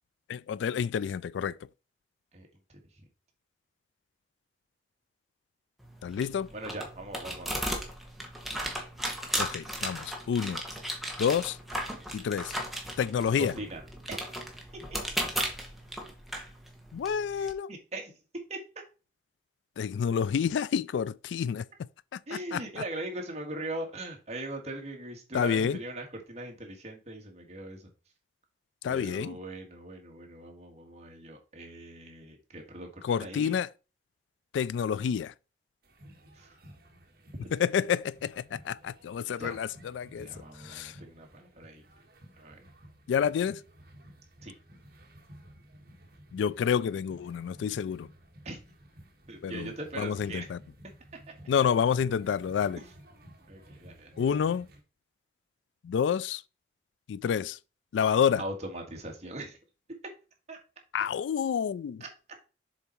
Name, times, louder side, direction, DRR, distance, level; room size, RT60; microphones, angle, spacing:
voice 1, 0.3-1.6 6.0-6.5 9.4-10.6 11.2-11.6 12.1-12.5 13.0-13.6 16.9-17.7 19.8-21.6 22.1-22.6 25.3-25.8 28.8-29.4 33.0-33.7 34.5-35.3 37.5-40.3 40.6-41.0 43.1-43.6 46.3-48.1 49.4-50.6 51.5-52.8 54.2-54.7 55.8-56.4 57.1-57.6 57.9-58.4 60.9-62.0, left 7 dB, 85° left, 0.3 m, -29 dB
sound 1, 5.8-17.5, right 1 dB, ahead, 1.1 m, -36 dB
voice 2, 6.5-7.5 13.4-13.8 14.1-14.2 14.9-15.0 17.4-18.1 18.5-18.6 22.3-27.9 28.9-33.5 36.3-36.5 37.4-37.5 39.4-39.7 40.2-41.8 42.4-42.7 44.4-44.5 48.4-48.6 49.3-50.5 52.8-52.9 53.5-54.1 58.4-59.6 60.5-60.6 62.0-62.1, right 1 dB, 35° right, 1.7 m, -40 dB
sound 2, 35.8-54.8, equal, 55° right, 1.5 m, -54 dB
7.1 x 4.0 x 4.5 m
head